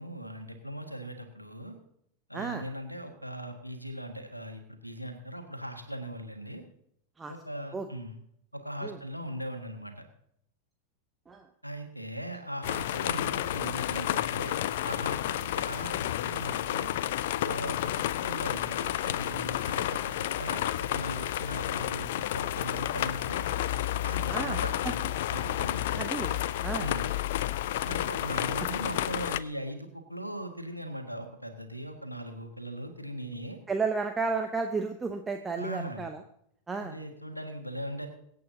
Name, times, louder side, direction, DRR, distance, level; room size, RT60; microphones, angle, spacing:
voice 1, 0.0-1.8 2.3-6.6 7.3-8.2 8.5-10.1 11.6-14.5 14.8-16.9 17.4-23.4 24.0-26.1 26.8-27.1 27.8-33.6 35.6-36.1 36.8-38.1, equal, 90° left, 7 dB, 1.6 m, -39 dB
voice 2, 2.3-2.6 7.2-7.3 7.7-7.9 8.8-9.0 11.3-11.5 24.3-24.6 25.9-26.3 26.6-26.9 28.6-28.7 33.7-36.2 36.7-37.0, right 4 dB, 15° right, 6 dB, 0.8 m, -32 dB
sound 1, 12.6-29.4, left 13 dB, 55° left, 0.4 m, -31 dB
23.5 x 8.5 x 2.8 m, 0.73 s
figure-of-eight pair, 90°, 0 cm